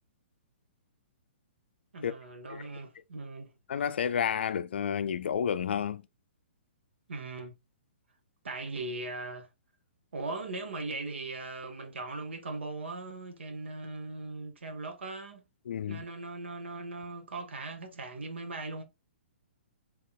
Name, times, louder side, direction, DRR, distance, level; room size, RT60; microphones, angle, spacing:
voice 1, 1.9-3.5 7.1-7.5 8.4-9.5 10.1-15.4 15.9-18.8, right 3 dB, 85° right, 1.0 m, -39 dB
voice 2, 3.7-6.0 15.7-16.0, left 8 dB, 75° left, 0.4 m, -30 dB
3.9 x 2.9 x 2.2 m
hypercardioid pair, 140°, 6 cm